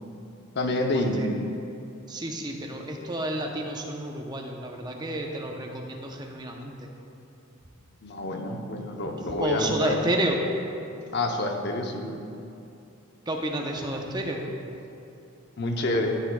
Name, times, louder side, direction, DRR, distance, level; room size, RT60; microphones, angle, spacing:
voice 1, 0.5-1.2 8.0-10.0 11.1-12.2 15.6-16.2, left 2 dB, 55° left, 3 dB, 0.7 m, -28 dB
voice 2, 2.1-6.9 9.4-10.4 13.3-14.4, right 1 dB, 20° right, 1 dB, 0.7 m, -30 dB
13.0 x 7.3 x 2.3 m, 2.7 s
head